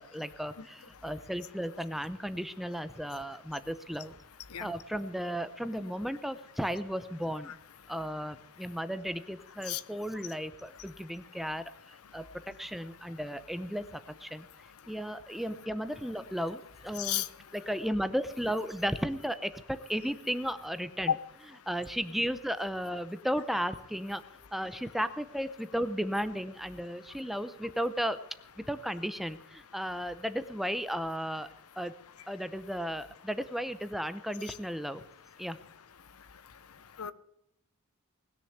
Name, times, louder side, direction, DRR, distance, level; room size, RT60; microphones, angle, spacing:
voice 1, 0.0-4.2 4.6-7.6 7.9-11.6 12.1-14.5 14.9-17.3 17.5-21.2 21.7-24.2 24.5-28.2 28.6-31.5 31.8-31.9 32.3-35.0 35.4-35.6, equal, ahead, 12 dB, 0.7 m, -34 dB
voice 2, 4.5-4.7 9.7-9.8 17.0-17.3 37.0-37.1, left 12 dB, 90° left, 15 dB, 0.8 m, -32 dB
19.5 x 6.9 x 8.0 m, 0.77 s
head